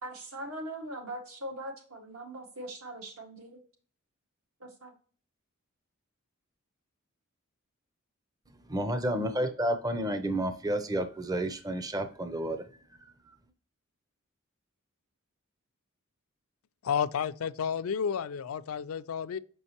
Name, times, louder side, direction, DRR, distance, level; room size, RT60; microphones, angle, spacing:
voice 1, 0.0-3.6 4.6-4.9, right 1 dB, 80° right, 1.9 m, -41 dB
voice 2, 8.7-12.6, right 1 dB, 15° right, 0.5 m, -30 dB
voice 3, 16.8-19.4, left 7 dB, 75° left, 0.4 m, -31 dB
6.3 x 5.3 x 2.9 m
head